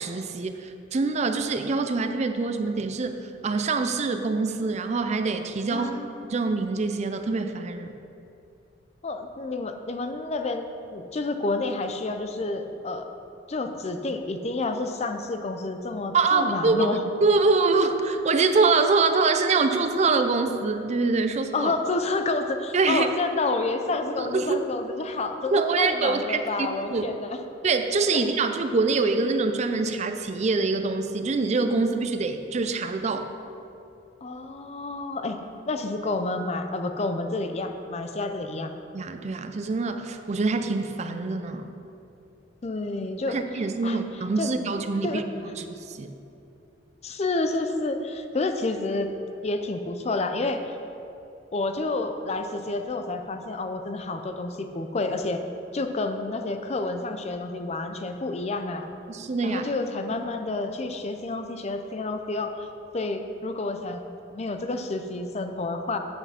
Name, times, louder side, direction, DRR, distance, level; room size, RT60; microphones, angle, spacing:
voice 1, 0.0-5.9 6.3-7.9 16.1-21.7 22.7-23.1 24.2-24.6 25.5-27.1 27.6-33.3 38.9-41.7 43.3-45.2 45.6-46.1 59.1-59.6, right 3 dB, 35° right, 7 dB, 0.4 m, -25 dB
voice 2, 5.7-6.2 9.0-10.7 10.9-13.1 13.5-17.0 21.5-27.4 28.1-28.2 34.2-35.4 35.7-38.7 42.6-43.4 43.8-44.0 44.4-44.5 45.0-45.2 47.0-49.1 49.4-50.7 51.5-55.4 55.7-58.9 59.4-62.7 62.9-64.0 64.3-66.0, left 3 dB, 35° left, 7 dB, 0.5 m, -29 dB
8.1 x 5.8 x 5.7 m, 2.8 s
head